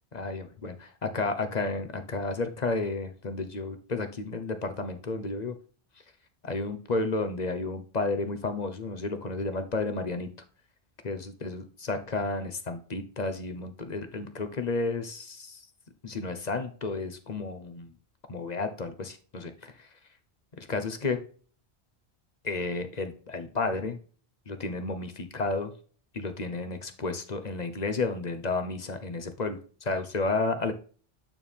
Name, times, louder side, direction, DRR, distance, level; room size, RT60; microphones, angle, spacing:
voice 1, 0.1-5.5 6.4-10.3 11.0-15.6 16.0-17.9 18.3-19.5 20.7-21.2 22.4-24.0 24.5-25.7 26.1-30.7, left 3 dB, 40° left, 8 dB, 1.0 m, -32 dB
9.0 x 4.6 x 3.5 m, 0.41 s
omnidirectional pair, 1.1 m